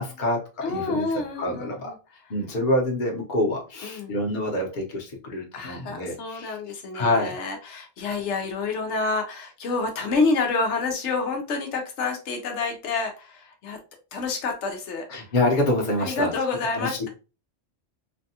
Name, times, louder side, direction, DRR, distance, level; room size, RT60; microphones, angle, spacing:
voice 1, 0.0-1.1 1.4-1.9 2.3-6.6 6.9-7.3 15.1-16.3 16.7-17.1, left 1 dB, 45° left, 0 dB, 0.9 m, -26 dB
voice 2, 0.6-1.9 3.8-4.1 5.5-13.8 14.1-15.0 16.0-17.1, left 4 dB, 80° left, 3 dB, 1.0 m, -28 dB
3.3 x 2.3 x 2.7 m, 0.32 s
omnidirectional pair, 1.2 m